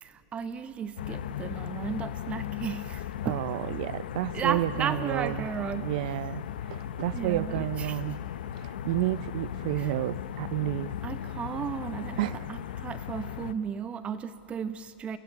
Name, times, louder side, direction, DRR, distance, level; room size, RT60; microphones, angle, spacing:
voice 1, 0.0-3.4 4.3-6.0 7.1-8.2 9.7-9.9 11.0-15.2, right 7 dB, 25° right, 10 dB, 0.9 m, -35 dB
sound 1, 1.0-13.5, left 10 dB, 85° left, 0.7 m, -37 dB
voice 2, 3.2-5.5 5.8-8.2 8.6-10.9 12.2-12.5, right 16 dB, 65° right, 17 dB, 0.6 m, -31 dB
25.0 x 16.0 x 8.1 m, 2.5 s
supercardioid pair, 130°, 5 cm